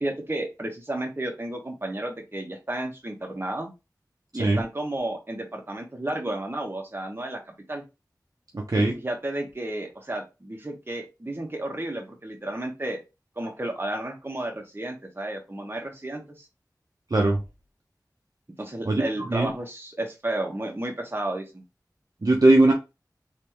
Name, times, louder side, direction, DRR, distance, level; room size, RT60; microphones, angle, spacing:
voice 1, 0.0-3.7 4.3-7.8 8.9-13.0 13.4-16.5 18.6-21.6, right 1 dB, 30° right, 2 dB, 1.2 m, -32 dB
voice 2, 8.5-8.9 17.1-17.4 18.9-19.0 19.3-19.5 22.2-22.7, right 2 dB, 55° right, 0 dB, 0.9 m, -19 dB
3.3 x 3.3 x 3.1 m, 0.26 s
wide cardioid pair, 45°, 7 cm